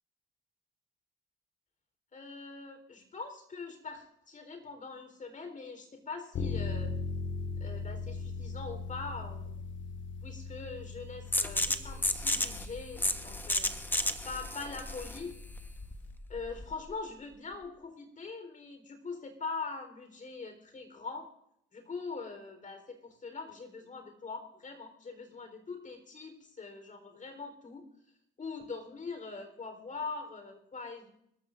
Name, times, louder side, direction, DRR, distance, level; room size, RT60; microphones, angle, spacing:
voice 1, 2.1-6.9 7.6-9.6 10.2-13.7 14.2-15.3 16.3-21.3 21.7-27.9 28.4-31.1, left 4 dB, 40° left, 6 dB, 4.1 m, -42 dB
sound 1, 6.3-16.1, left 5 dB, 75° left, 1.8 m, -40 dB
sound 2, 11.3-16.8, left 1 dB, 10° left, 1.2 m, -33 dB
26.5 x 13.5 x 2.6 m, 0.75 s
cardioid pair, 90°, 20 cm